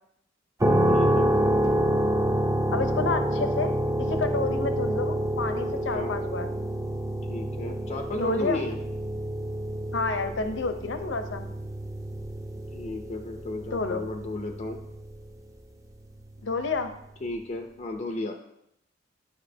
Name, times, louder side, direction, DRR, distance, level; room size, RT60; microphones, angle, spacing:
sound 1, 0.6-15.3, right 1 dB, 15° right, 0.6 m, -28 dB
voice 1, 0.9-1.3 5.9-6.2 7.3-8.8 12.7-14.8 17.2-18.4, left 2 dB, 35° left, 4 dB, 0.5 m, -33 dB
voice 2, 2.7-6.5 8.2-8.6 9.9-11.5 13.7-14.0 16.4-16.9, left 3 dB, 70° left, 8 dB, 0.7 m, -30 dB
9.6 x 5.9 x 2.7 m, 0.77 s
head